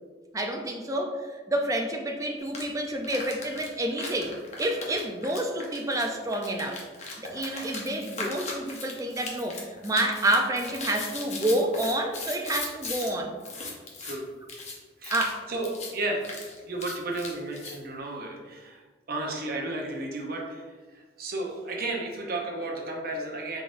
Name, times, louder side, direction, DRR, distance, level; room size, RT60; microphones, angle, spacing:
voice 1, 0.3-6.8 7.3-13.3 15.1-15.4, right 1 dB, 20° right, 3 dB, 0.4 m, -29 dB
sound 1, 2.5-2.6 3.0-13.1 13.4-14.1 14.5-14.7 15.0-15.4 15.6-15.9 16.2-17.8, left 3 dB, 40° left, 0.8 m, -38 dB
voice 2, 15.5-16.3 16.6-18.8 19.1-20.6 20.9-23.6, right 2 dB, 55° right, 0 dB, 0.7 m, -33 dB
4.9 x 3.8 x 2.5 m, 1.4 s
head